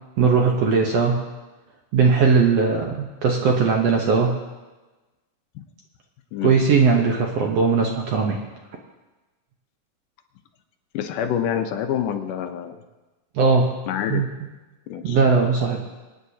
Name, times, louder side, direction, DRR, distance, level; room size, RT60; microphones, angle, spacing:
voice 1, 0.2-1.2 1.9-4.4 6.4-8.4 13.4-13.7 14.1-14.3 15.0-15.8, right 5 dB, 65° right, 1 dB, 1.7 m, -19 dB
voice 2, 10.9-12.7 13.9-14.2 14.9-15.2, left 9 dB, 80° left, 6 dB, 2.3 m, -26 dB
24.5 x 9.7 x 2.8 m, 1.2 s
omnidirectional pair, 3.8 m